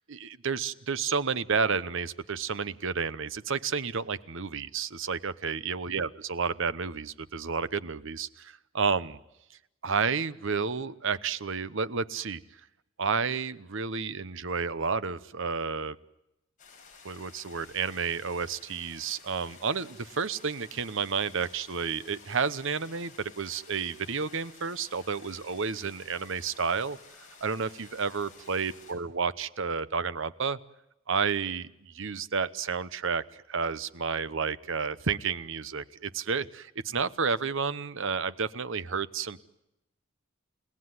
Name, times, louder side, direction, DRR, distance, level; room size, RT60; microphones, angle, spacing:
voice 1, 0.1-9.2 9.8-12.4 13.0-16.0 17.0-27.0 27.4-30.6 31.1-39.4, right 5 dB, 65° right, 15 dB, 1.0 m, -31 dB
sound 1, 16.6-28.9, left 5 dB, 40° left, 7.2 m, -53 dB
30.0 x 18.0 x 9.7 m, 0.89 s
head